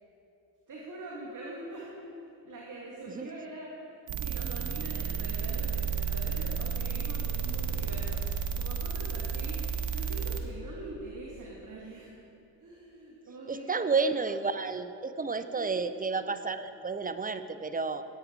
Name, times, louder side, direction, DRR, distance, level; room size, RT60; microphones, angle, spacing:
voice 1, 0.7-1.9 2.4-12.1 12.6-13.8 15.6-15.9, right 2 dB, 40° right, -3 dB, 2.2 m, -44 dB
sound 1, 4.1-10.4, right 6 dB, 60° right, 1.2 m, -32 dB
voice 2, 13.5-18.0, right 4 dB, 15° right, 11 dB, 0.8 m, -31 dB
16.5 x 8.7 x 4.6 m, 2.7 s
hypercardioid pair, 50°, 48 cm